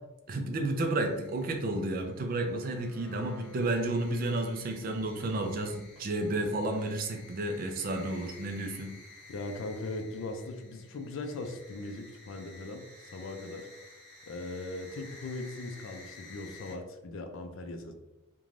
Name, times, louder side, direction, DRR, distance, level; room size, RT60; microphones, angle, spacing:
voice 1, 0.3-9.0, right 2 dB, 45° right, 4 dB, 0.4 m, -31 dB
sound 1, 0.8-16.7, left 3 dB, 5° left, 1.0 m, -53 dB
voice 2, 9.3-13.7 14.2-17.9, left 2 dB, 65° left, 6 dB, 0.4 m, -39 dB
2.5 x 2.2 x 3.1 m, 0.99 s
head